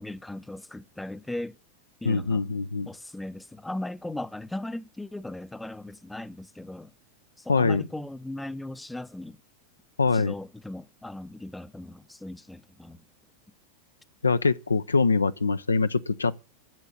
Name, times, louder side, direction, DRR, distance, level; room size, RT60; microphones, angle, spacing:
voice 1, 0.0-1.6 2.0-2.5 2.9-6.9 7.4-9.4 10.0-13.0, left 1 dB, 5° left, 0.7 m, -38 dB
voice 2, 2.0-2.9 7.5-7.8 10.0-10.3 14.2-16.4, left 4 dB, 75° left, 0.5 m, -24 dB
10.5 x 7.2 x 8.6 m
figure-of-eight pair, 90°, 0 cm